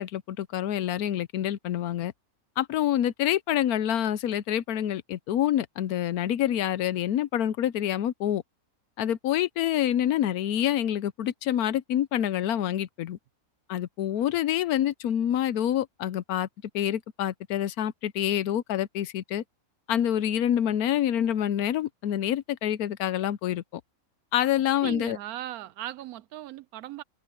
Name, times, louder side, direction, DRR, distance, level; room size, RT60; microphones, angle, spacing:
voice 1, 0.0-2.1 2.6-8.4 9.0-13.2 13.7-16.5 16.7-19.4 19.9-23.6 24.3-25.2, left 11 dB, 85° left, 1.2 m, -27 dB
voice 2, 24.8-27.0, right 13 dB, 90° right, 1.1 m, -38 dB
omnidirectional pair, 1.5 m